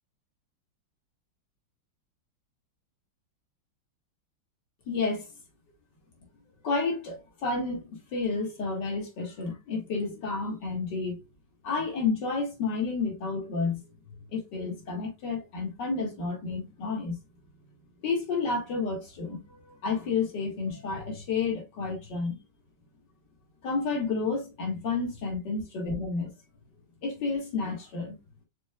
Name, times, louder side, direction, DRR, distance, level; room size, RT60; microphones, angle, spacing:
voice 1, 4.9-5.3 6.6-11.3 11.6-13.8 14.3-17.2 18.0-22.4 23.6-26.3 27.0-28.2, left 4 dB, 60° left, 2.4 m, -31 dB
5.4 x 4.3 x 2.3 m
omnidirectional pair, 2.2 m